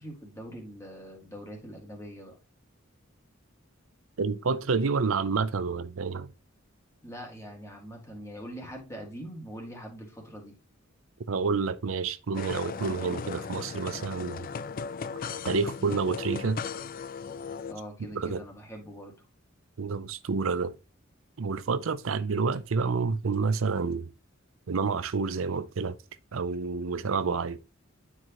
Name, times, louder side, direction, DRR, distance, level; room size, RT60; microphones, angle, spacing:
voice 1, 0.0-2.4 7.0-10.5 17.7-19.1, equal, 15° left, 2.1 m, -43 dB
voice 2, 4.2-6.3 11.3-14.5 15.4-16.6 18.1-18.4 19.8-20.7 21.4-24.1 24.7-25.9 26.3-27.6, right 4 dB, 85° right, 0.6 m, -29 dB
sound 1, 12.3-17.7, left 6 dB, 45° left, 0.4 m, -37 dB
9.7 x 4.7 x 3.0 m
head